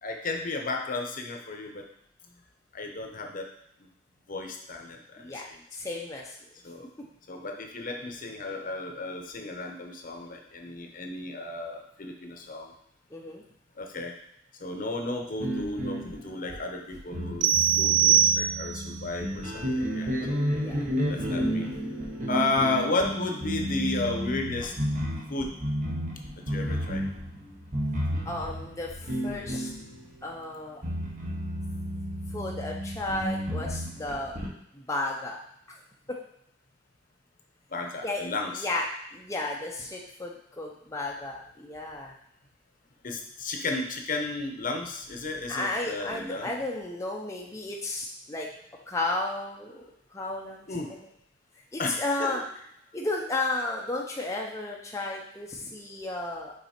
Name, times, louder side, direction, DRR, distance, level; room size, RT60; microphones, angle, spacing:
voice 1, 0.0-1.9 2.7-3.5 4.3-5.6 6.6-6.9 7.3-12.7 13.8-14.1 14.6-20.4 21.1-21.7 22.3-24.7 25.3-25.6 26.4-27.1 28.1-28.3 29.9-30.0 37.7-38.7 43.0-46.5 50.7-50.9 51.8-52.4, left 2 dB, 50° left, 3 dB, 0.8 m, -33 dB
voice 2, 5.7-6.4 13.1-13.4 20.6-20.8 28.3-29.7 30.2-30.8 32.3-34.4 34.7-35.4 35.7-35.8 36.1-36.2 38.0-38.2 38.5-38.8 39.1-42.1 45.5-48.5 48.9-49.8 50.1-50.7 51.7-52.4 52.9-56.5, left 2 dB, 15° left, -2 dB, 0.6 m, -33 dB
sound 1, 15.3-30.3 30.8-34.5, equal, 45° right, 1.3 m, -32 dB
sound 2, 17.4-18.9, right 9 dB, 85° right, 0.3 m, -22 dB
5.7 x 4.0 x 4.3 m, 0.71 s
head